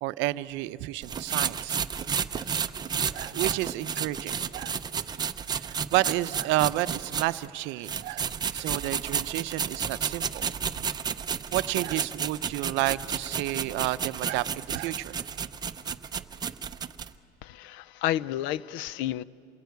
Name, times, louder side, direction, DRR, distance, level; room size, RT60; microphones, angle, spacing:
voice 1, 0.0-1.8 3.1-4.8 5.5-8.3 8.5-10.5 10.8-10.9 11.5-15.2, right 17 dB, 70° right, 14 dB, 0.6 m, -30 dB
sound 1, 1.0-7.5 7.8-17.1, right 7 dB, 20° right, 0.6 m, -32 dB
voice 2, 17.4-19.2, left 13 dB, 75° left, 19 dB, 0.5 m, -31 dB
27.5 x 21.5 x 9.4 m, 2.9 s
cardioid pair, 155°, 19 cm